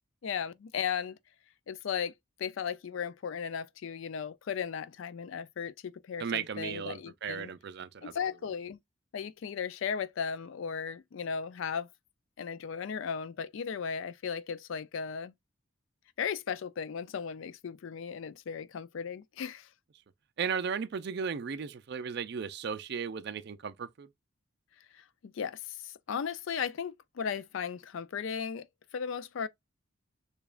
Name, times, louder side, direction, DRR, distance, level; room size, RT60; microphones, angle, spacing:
voice 1, 0.2-1.2 1.7-2.1 2.4-7.5 8.0-8.8 9.1-11.9 12.4-15.3 16.2-19.7 24.9-28.7 28.9-29.5, left 7 dB, 65° left, 0.4 m, -36 dB
voice 2, 6.2-8.1 20.4-24.1, right 6 dB, 50° right, 0.4 m, -35 dB
6.8 x 2.3 x 2.4 m
head